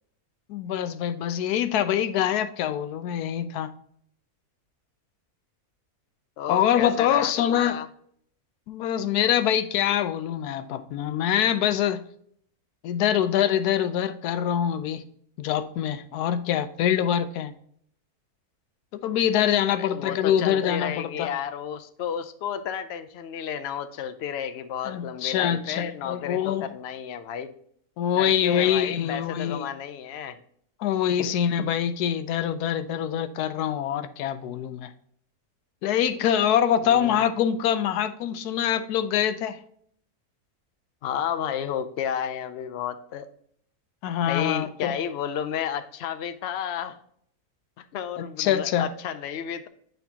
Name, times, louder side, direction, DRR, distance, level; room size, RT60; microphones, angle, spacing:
voice 1, 0.5-3.7 6.5-7.8 8.7-12.0 12.8-15.0 15.4-17.5 18.9-21.3 24.8-26.7 28.0-29.7 30.8-34.9 35.8-39.6 44.0-44.9 48.2-48.9, left 10 dB, 85° left, 12 dB, 1.1 m, -24 dB
voice 2, 6.4-7.9 19.8-27.5 28.1-30.4 31.1-31.3 36.8-37.2 41.0-43.3 44.2-47.0 47.8-49.7, left 8 dB, 70° left, 9 dB, 0.6 m, -32 dB
9.0 x 4.3 x 2.8 m, 0.65 s
omnidirectional pair, 1.6 m